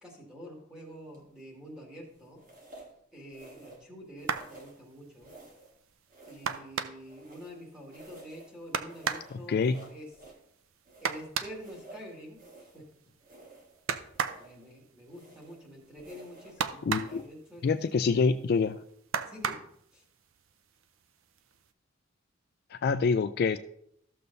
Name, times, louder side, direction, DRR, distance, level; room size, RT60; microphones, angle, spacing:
voice 1, 0.0-2.4 3.1-5.3 6.3-10.1 11.0-12.4 12.7-12.9 14.4-18.3 19.2-19.6 19.9-20.0, equal, 5° right, -4 dB, 2.1 m, -47 dB
sound 1, 1.1-1.5 2.4-3.0 3.3-3.9 4.2-4.8 5.2-5.8 6.1-7.6 7.9-8.5 8.9-10.4 10.8-12.9 13.2-13.8 14.1-14.7 15.1-15.6 16.0-16.6 17.0-17.3, right 2 dB, 40° right, 1.6 m, -52 dB
sound 2, 4.2-4.6 6.4-7.2 8.7-9.3 11.0-11.6 13.9-14.5 16.6-17.2 19.1-19.7 20.8-20.9 21.4-21.6, right 7 dB, 80° right, 0.5 m, -33 dB
voice 2, 9.5-9.8 16.8-17.3 17.6-18.8 22.7-23.6, left 5 dB, 50° left, 10 dB, 0.3 m, -26 dB
13.5 x 6.7 x 2.6 m, 0.71 s
head